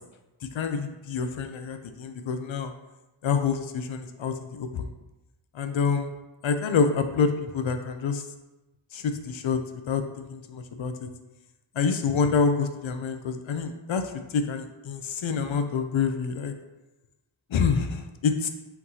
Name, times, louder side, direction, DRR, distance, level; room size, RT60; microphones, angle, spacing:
voice 1, 0.5-2.7 3.2-4.9 5.5-6.1 6.4-8.2 8.9-9.6 9.9-11.1 11.8-14.0 14.3-16.5 17.5-18.5, left 5 dB, 70° left, 8 dB, 0.5 m, -27 dB
4.5 x 3.8 x 2.7 m, 1.0 s
wide cardioid pair, 80°, 50 cm